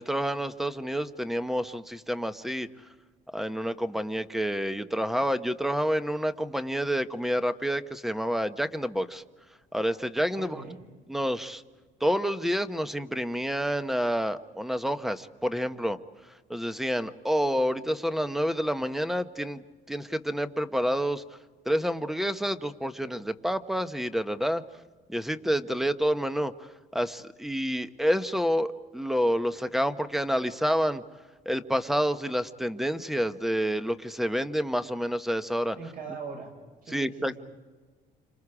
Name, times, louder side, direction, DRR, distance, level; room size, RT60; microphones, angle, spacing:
voice 1, 0.0-2.7 3.3-9.2 9.7-10.6 11.1-11.6 12.0-16.0 16.5-19.6 19.9-21.2 21.6-24.6 25.1-26.7 26.9-31.0 31.4-35.8 36.9-37.3, equal, ahead, 10 dB, 1.0 m, -28 dB
voice 2, 10.4-10.8 35.7-36.5 36.8-37.4, right 4 dB, 55° right, 3 dB, 6.6 m, -40 dB
29.5 x 26.5 x 4.9 m, 1.4 s
cardioid pair, 110°, 17 cm